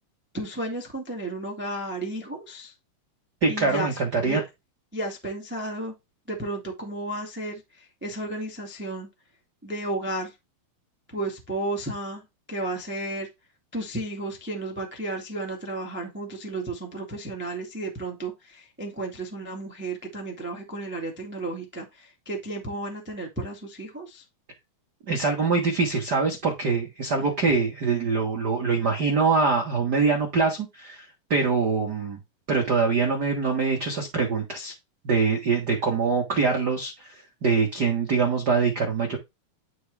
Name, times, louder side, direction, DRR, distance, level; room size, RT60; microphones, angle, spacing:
voice 1, 0.3-2.7 3.5-4.4 4.9-5.9 6.3-9.1 9.6-10.3 11.1-13.3 13.7-24.2, right 2 dB, 15° right, 0.3 m, -33 dB
voice 2, 3.4-4.4 25.1-31.0 31.3-32.2 32.5-34.7 35.0-39.2, right 4 dB, 75° right, 0.9 m, -24 dB
11.0 x 4.7 x 3.4 m
omnidirectional pair, 4.3 m